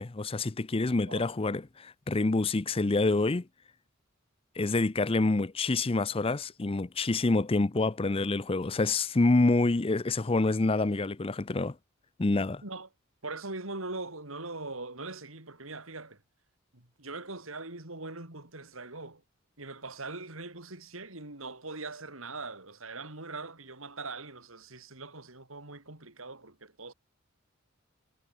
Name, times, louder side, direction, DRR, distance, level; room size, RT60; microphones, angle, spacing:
voice 1, 0.0-3.5 4.6-11.7 12.2-12.6, left 2 dB, 25° left, 0.6 m, -27 dB
voice 2, 13.2-16.2 16.7-19.2 19.6-26.9, right 3 dB, 80° right, 5.1 m, -41 dB
head